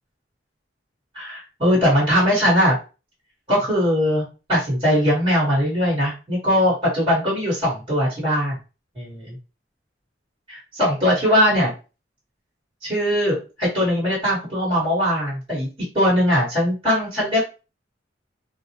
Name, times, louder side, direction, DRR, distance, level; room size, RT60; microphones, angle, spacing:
voice 1, 1.1-2.7 3.5-8.6 8.9-9.4 10.5-11.7 12.8-15.7 15.9-17.4, equal, 25° right, -8 dB, 1.3 m, -20 dB
2.4 x 2.0 x 2.8 m, 0.32 s
head